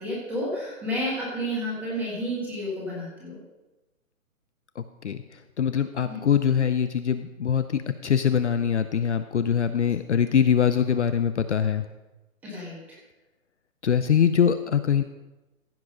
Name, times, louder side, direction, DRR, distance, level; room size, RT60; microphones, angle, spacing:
voice 1, 0.0-3.4 6.1-6.2 12.4-13.0, equal, 5° right, -6 dB, 1.6 m, -31 dB
voice 2, 4.8-5.2 5.6-11.8 13.8-15.0, left 8 dB, 55° left, 10 dB, 0.6 m, -23 dB
15.0 x 6.1 x 5.2 m, 1.1 s
hypercardioid pair, 175°, 42 cm